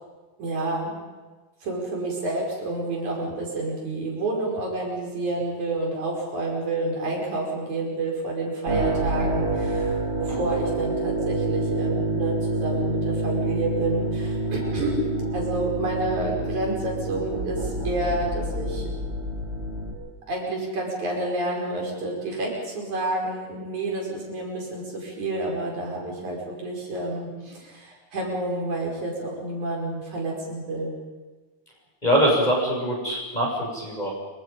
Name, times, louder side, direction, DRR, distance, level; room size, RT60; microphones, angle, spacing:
voice 1, 0.4-1.0 1.6-15.0 15.3-19.1 20.3-30.9, right 2 dB, 75° right, -1 dB, 6.7 m, -29 dB
sound 1, 8.7-19.9, right 2 dB, 30° right, 6.1 m, -28 dB
voice 2, 32.0-34.1, equal, 15° left, -3 dB, 6.9 m, -23 dB
27.0 x 25.0 x 5.4 m, 1.3 s
omnidirectional pair, 3.4 m